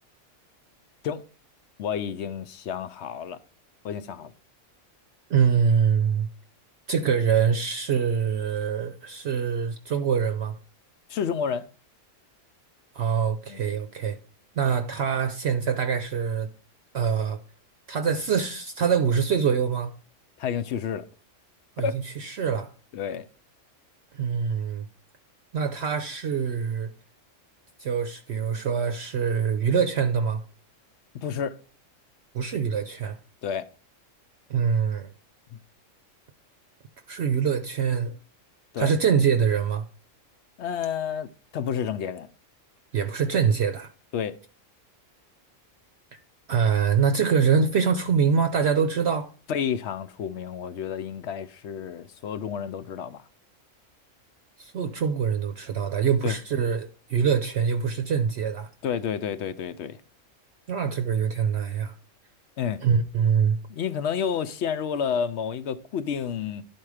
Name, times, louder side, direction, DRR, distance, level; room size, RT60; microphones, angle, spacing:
voice 1, 1.8-3.4 3.8-4.3 11.1-11.7 13.5-13.6 20.4-21.1 21.8-22.0 22.9-23.3 31.1-31.6 33.4-33.7 38.7-38.9 40.6-42.3 44.1-44.4 49.5-53.2 56.2-56.4 58.8-60.0 62.6-62.8 63.7-66.6, left 7 dB, 65° left, 0.8 m, -30 dB
voice 2, 5.3-6.3 6.9-10.6 12.9-14.2 14.6-16.5 16.9-17.4 17.9-19.9 21.8-22.7 24.1-24.9 25.5-26.9 27.8-30.4 32.3-33.2 34.5-35.1 37.1-38.2 38.8-39.8 42.9-43.9 46.5-49.3 54.6-58.7 60.7-61.9 62.8-63.6, right 6 dB, 60° right, 0.9 m, -24 dB
11.0 x 4.4 x 4.8 m
omnidirectional pair, 1.3 m